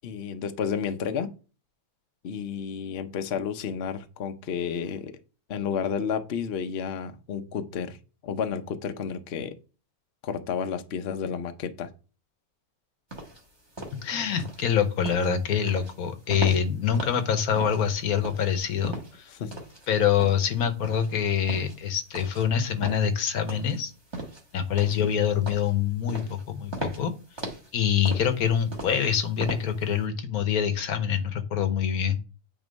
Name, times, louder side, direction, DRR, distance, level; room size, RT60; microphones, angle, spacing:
voice 1, 0.0-1.3 2.2-5.2 5.5-8.0 8.2-9.6 10.2-11.9 19.3-19.5 25.0-25.1, left 7 dB, 55° left, 8 dB, 0.8 m, -31 dB
sound 1, 13.1-30.0, right 1 dB, 20° right, 1.3 m, -39 dB
voice 2, 14.0-19.3 19.9-23.9 24.5-27.1 27.7-32.2, left 8 dB, 75° left, 9 dB, 1.3 m, -25 dB
9.0 x 3.0 x 5.2 m, 0.34 s
omnidirectional pair, 1.6 m